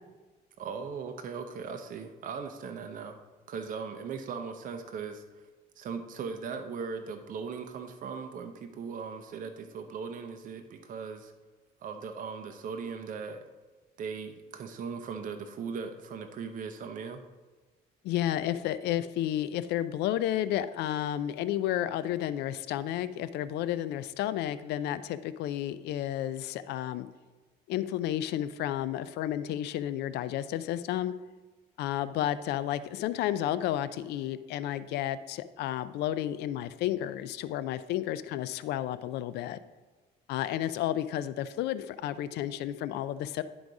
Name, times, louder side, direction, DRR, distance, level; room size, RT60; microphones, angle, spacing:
voice 1, 0.6-3.2 3.5-5.4 5.8-11.3 11.8-13.4 14.0-17.2, right 5 dB, 50° right, 6 dB, 0.7 m, -38 dB
voice 2, 18.0-27.1 27.7-31.1 31.8-39.6 40.3-43.4, left 12 dB, 80° left, 14 dB, 0.4 m, -32 dB
10.5 x 3.9 x 4.8 m, 1.3 s
cardioid pair, 110°, 17 cm